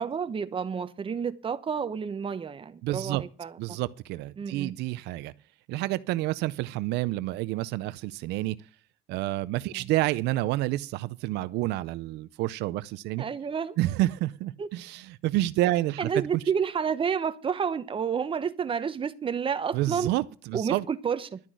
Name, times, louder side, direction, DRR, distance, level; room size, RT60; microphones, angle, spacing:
voice 1, 0.0-3.6 4.4-4.8 9.7-9.9 13.2-13.8 14.6-14.7 16.0-20.1 20.5-21.4, right 6 dB, 30° right, 1.0 m, -30 dB
voice 2, 2.8-3.2 3.6-5.3 5.7-8.6 9.1-13.2 13.8-16.1 19.7-20.8, right 16 dB, 85° right, 0.5 m, -29 dB
12.0 x 6.1 x 9.1 m
cardioid pair, 110°, 17 cm